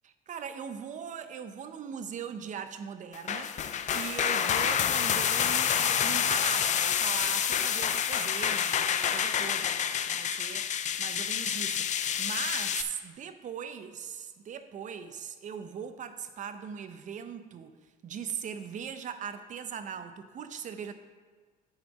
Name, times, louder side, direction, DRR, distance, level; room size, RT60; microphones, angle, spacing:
voice 1, 0.0-3.6 3.9-10.7 11.0-11.9 12.2-17.7 18.0-20.9, right 7 dB, 50° right, 10 dB, 0.7 m, -40 dB
sound 1, 3.1-12.8, left 8 dB, 45° left, 0.5 m, -28 dB
8.8 x 6.1 x 5.4 m, 1.4 s
cardioid pair, 110°, 17 cm